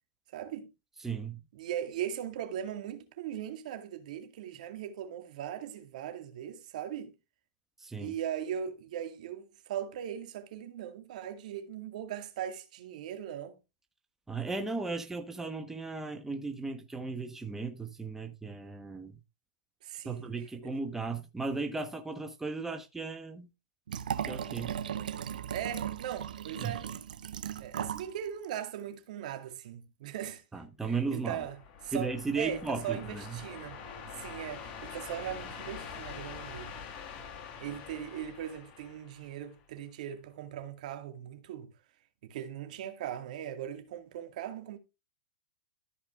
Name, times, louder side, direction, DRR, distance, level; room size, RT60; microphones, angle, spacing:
voice 1, 0.3-0.7 1.5-7.1 7.9-13.5 19.8-20.3 20.6-20.7 25.5-26.9 27.6-30.4 30.8-31.6 31.8-32.1 32.4-33.8 34.1-36.7 37.6-41.7 42.2-44.8, right 10 dB, 65° right, 2.0 m, -39 dB
voice 2, 1.0-1.4 7.8-8.1 14.3-19.2 20.0-23.5 24.3-24.7 26.6-26.8 30.5-31.4 31.9-33.4, right 4 dB, 10° right, 1.1 m, -36 dB
Liquid, 23.9-28.1 28.4-28.5, right 9 dB, 80° right, 0.9 m, -37 dB
sound 1, 31.1-39.6, left 6 dB, 40° left, 1.6 m, -45 dB
13.5 x 5.0 x 3.5 m
hypercardioid pair, 125°, 4 cm